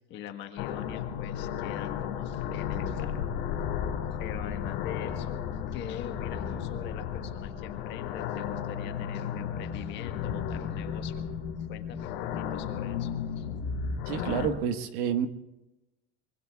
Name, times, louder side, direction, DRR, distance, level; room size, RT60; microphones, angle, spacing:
voice 1, 0.1-3.3 4.2-11.2 11.7-13.7, left 10 dB, 35° left, 5 dB, 1.4 m, -43 dB
sound 1, 0.6-14.5, left 8 dB, 55° left, 3.1 m, -34 dB
voice 2, 14.1-15.3, right 8 dB, 55° right, 8 dB, 1.5 m, -29 dB
24.5 x 24.5 x 2.4 m, 0.98 s
cardioid pair, 180°, 32 cm